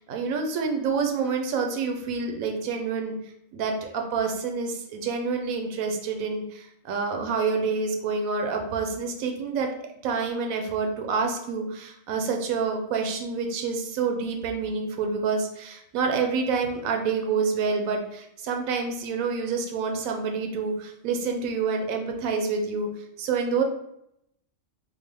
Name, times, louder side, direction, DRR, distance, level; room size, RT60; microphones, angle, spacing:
voice 1, 0.0-3.2 3.5-9.7 10.0-22.9 23.2-23.6, right 5 dB, 85° right, 3 dB, 1.1 m, -27 dB
5.1 x 2.1 x 3.3 m, 0.78 s
omnidirectional pair, 1.4 m